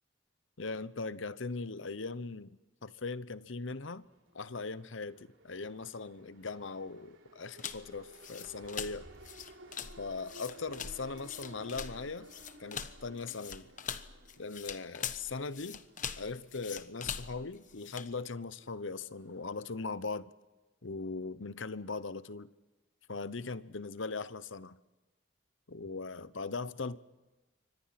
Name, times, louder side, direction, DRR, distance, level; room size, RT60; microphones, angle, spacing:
voice 1, 0.6-4.1 4.3-9.1 10.0-12.3 12.6-13.7 14.4-15.8 16.2-20.3 20.8-22.5 23.1-24.8 25.7-27.0, left 4 dB, 80° left, 1.0 m, -40 dB
sound 1, 4.0-19.9, right 2 dB, 90° right, 3.7 m, -57 dB
sound 2, 7.6-18.1, left 7 dB, 40° left, 1.1 m, -43 dB
29.0 x 25.0 x 5.9 m
head